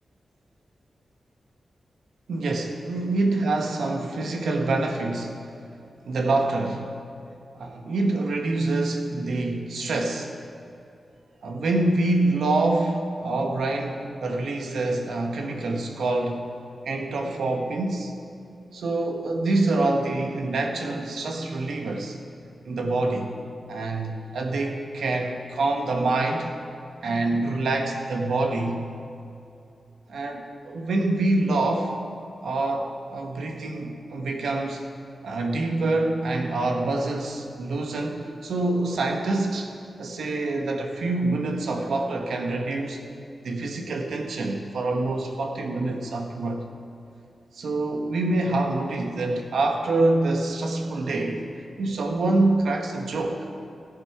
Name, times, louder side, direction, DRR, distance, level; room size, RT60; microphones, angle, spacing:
voice 1, 2.3-5.5 6.1-6.9 7.6-10.3 11.4-16.5 16.8-18.1 18.7-22.2 22.6-23.3 23.7-26.5 27.0-28.9 30.1-32.0 32.4-34.8 35.2-39.7 40.0-43.0 43.4-46.6 47.5-51.4 51.8-53.5, right 2 dB, 90° right, 3 dB, 1.2 m, -26 dB
16.5 x 6.9 x 4.7 m, 2.7 s
wide cardioid pair, 125°, 0 cm